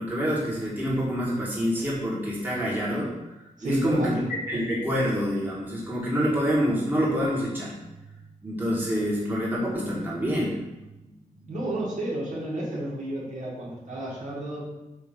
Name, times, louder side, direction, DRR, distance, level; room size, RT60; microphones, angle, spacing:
voice 1, 0.0-3.1 3.6-4.2 4.5-7.8 8.4-10.6, equal, 15° right, -6 dB, 1.6 m, -26 dB
voice 2, 3.6-4.2 11.5-14.7, right 1 dB, 65° right, -5 dB, 2.2 m, -31 dB
8.0 x 2.9 x 5.2 m, 0.99 s
wide cardioid pair, 160°, 14 cm